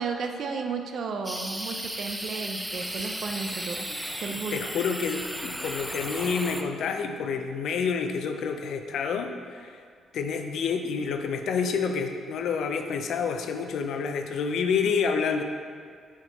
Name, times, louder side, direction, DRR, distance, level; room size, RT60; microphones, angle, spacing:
voice 1, 0.0-3.9 4.2-4.6, right 5 dB, 60° right, 5 dB, 0.4 m, -33 dB
sound 1, 1.2-6.6, equal, 5° right, 0.4 m, -35 dB
voice 2, 4.3-9.8 10.1-15.4, left 5 dB, 70° left, 6 dB, 0.5 m, -28 dB
7.0 x 3.6 x 4.0 m, 2.1 s
cardioid pair, 90°, 0 cm